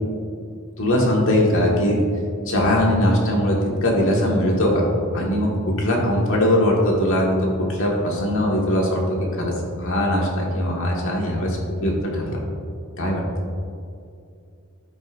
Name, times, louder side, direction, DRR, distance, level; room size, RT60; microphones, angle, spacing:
voice 1, 0.8-2.0 2.5-3.6 3.8-4.9 5.1-5.5 5.8-9.5 9.8-12.4 13.0-13.2, left 1 dB, 60° left, -2 dB, 1.7 m, -20 dB
13.5 x 5.4 x 2.6 m, 2.4 s
head